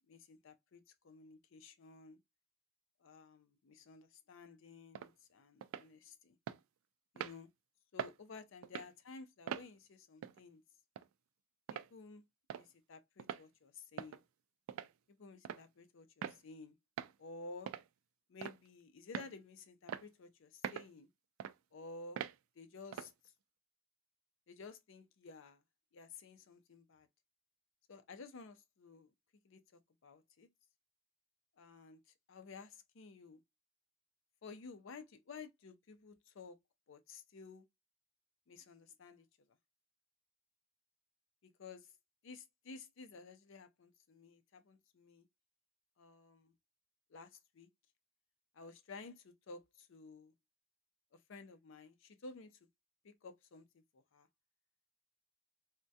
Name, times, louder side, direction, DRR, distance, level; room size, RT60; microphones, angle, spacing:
voice 1, 0.1-2.2 3.0-6.4 7.1-7.5 7.9-10.6 11.7-12.2 12.5-14.2 15.1-16.8 17.2-17.7 18.3-21.1 21.7-22.2 22.6-23.1 24.5-25.6 25.9-27.1 27.9-29.1 29.4-30.5 31.6-32.0 32.3-33.4 34.4-36.6 36.9-37.7 38.5-39.3 41.4-41.9 42.2-45.3 46.0-46.5 47.1-47.7 48.5-50.3 51.3-52.6 53.0-54.3, left 4 dB, 65° left, 0.5 m, -53 dB
sound 1, 4.9-5.1 5.6-5.9 6.5-6.6 7.2-7.4 8.0-8.2 8.6-8.9 9.5-9.7 10.2-10.4 11.0-11.1 11.7-11.9 12.5-12.7 13.2-13.4 14.0-14.2 14.7-14.9 15.4-15.6 16.2-16.4 17.0-17.1 17.7-17.9 18.4-18.7 19.1-19.3 19.9-20.1 20.6-20.9 21.4-21.5 22.2-22.4 22.9-23.1, right 8 dB, 75° right, 0.3 m, -43 dB
3.4 x 2.1 x 2.7 m
head